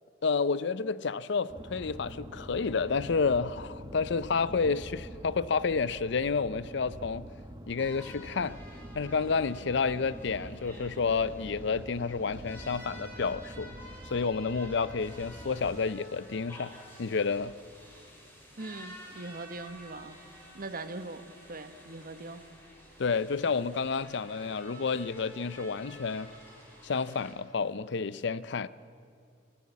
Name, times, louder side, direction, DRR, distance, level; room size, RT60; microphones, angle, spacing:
voice 1, 0.2-7.3 7.7-8.6 8.9-13.8 14.1-16.7 17.0-17.5 23.0-26.3 26.8-28.7, left 5 dB, 70° left, 0.5 m, -30 dB
sound 1, 1.5-15.8, right 1 dB, 20° right, 1.0 m, -46 dB
sound 2, 7.8-27.3, equal, 15° left, 5.6 m, -51 dB
voice 2, 18.6-20.2 20.5-21.2 21.5-22.4, right 2 dB, 50° right, 1.3 m, -41 dB
25.0 x 16.0 x 8.4 m
head